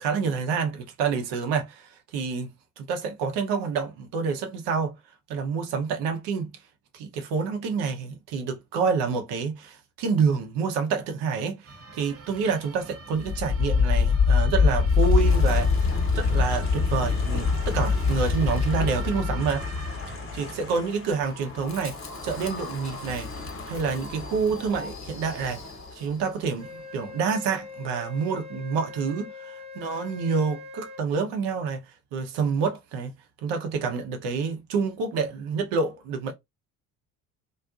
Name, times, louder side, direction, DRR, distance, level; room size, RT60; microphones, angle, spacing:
voice 1, 0.0-4.9 5.3-6.5 6.9-19.7 20.1-23.3 23.7-25.6 25.9-33.1 33.4-36.3, right 5 dB, 60° right, 0.8 m, -28 dB
sound 1, 11.6-20.8, right 4 dB, 30° right, 0.8 m, -44 dB
Wind, 13.2-26.2, left 5 dB, 30° left, 0.8 m, -25 dB
Wind instrument woodwind instrument, 26.6-31.0, left 4 dB, 15° right, 0.4 m, -42 dB
2.5 x 2.1 x 2.3 m
hypercardioid pair, 55°, 45 cm